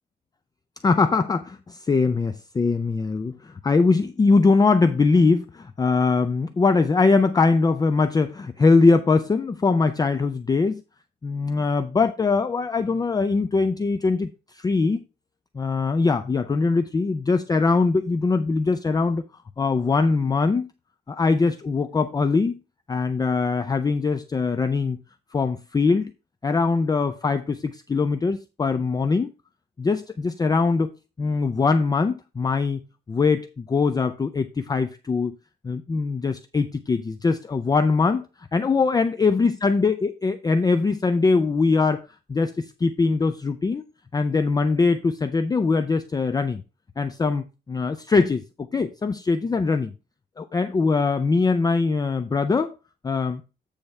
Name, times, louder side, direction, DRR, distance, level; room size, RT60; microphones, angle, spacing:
voice 1, 0.8-10.8 11.2-15.0 15.5-19.2 19.6-20.7 21.1-22.6 22.9-25.0 25.3-26.1 26.4-29.3 29.8-30.9 31.2-32.8 33.1-35.4 35.6-38.2 38.5-42.0 42.3-43.8 44.1-46.6 47.0-48.4 48.7-49.9 50.4-52.7 53.0-53.4, left 4 dB, 20° left, 0.4 m, -22 dB
8.7 x 3.5 x 5.4 m
wide cardioid pair, 135°, 18 cm